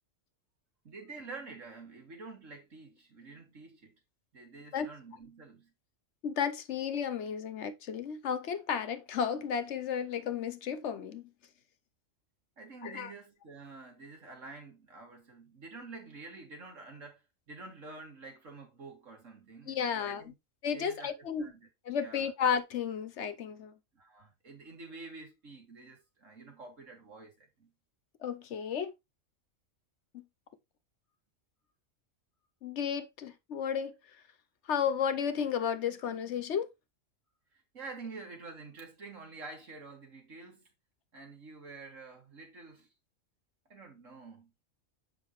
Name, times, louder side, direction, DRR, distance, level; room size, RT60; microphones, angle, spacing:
voice 1, 0.8-4.0 4.3-5.7 12.6-20.3 20.7-21.7 22.0-22.3 23.9-27.7 37.5-40.6 41.1-42.9 43.7-44.5, right 3 dB, 80° right, 2.6 m, -48 dB
voice 2, 6.2-11.3 12.8-13.1 19.7-20.3 20.6-21.5 21.9-23.7 28.2-28.9 30.1-30.2 32.6-34.0 34.7-36.7, left 7 dB, 65° left, 1.0 m, -33 dB
7.5 x 5.6 x 3.1 m
omnidirectional pair, 1.3 m